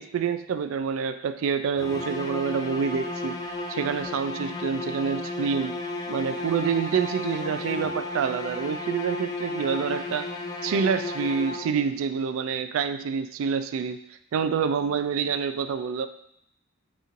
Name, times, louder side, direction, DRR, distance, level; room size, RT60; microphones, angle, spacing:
voice 1, 0.0-3.4 3.7-5.8 6.1-10.3 10.6-14.0 14.3-16.1, right 6 dB, 70° right, 11 dB, 0.3 m, -27 dB
sound 1, 1.8-12.0, left 2 dB, 20° left, 0.3 m, -33 dB
5.6 x 3.0 x 2.5 m, 0.72 s
head